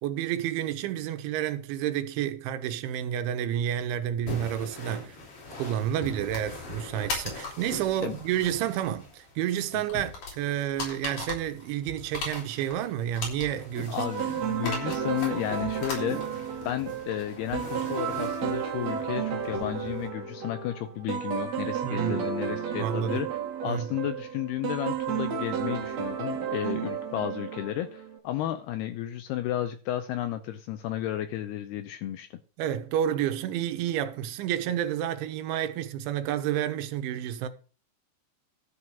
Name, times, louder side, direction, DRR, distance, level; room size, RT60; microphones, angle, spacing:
voice 1, 0.0-5.2 5.5-14.0 14.7-14.8 21.8-22.2 22.8-23.2 23.7-23.9 32.6-37.5, right 10 dB, 90° right, 3.4 m, -30 dB
sound 1, 4.3-20.1, left 3 dB, 50° left, 5.2 m, -40 dB
voice 2, 13.9-16.2 16.7-23.3 23.6-32.4, left 13 dB, 85° left, 2.3 m, -33 dB
sound 2, 14.0-28.2, right 8 dB, 55° right, 2.0 m, -32 dB
13.0 x 4.8 x 6.9 m
omnidirectional pair, 5.2 m